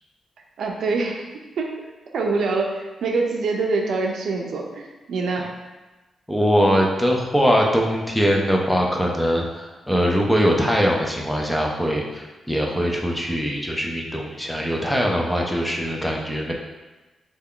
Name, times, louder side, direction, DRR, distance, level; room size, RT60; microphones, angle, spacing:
voice 1, 0.6-1.2 1.6-1.7 2.1-5.5, right 3 dB, 75° right, 1 dB, 0.4 m, -24 dB
voice 2, 6.3-16.5, equal, ahead, -1 dB, 0.4 m, -22 dB
3.3 x 2.2 x 3.6 m, 1.2 s
wide cardioid pair, 135°, 0 cm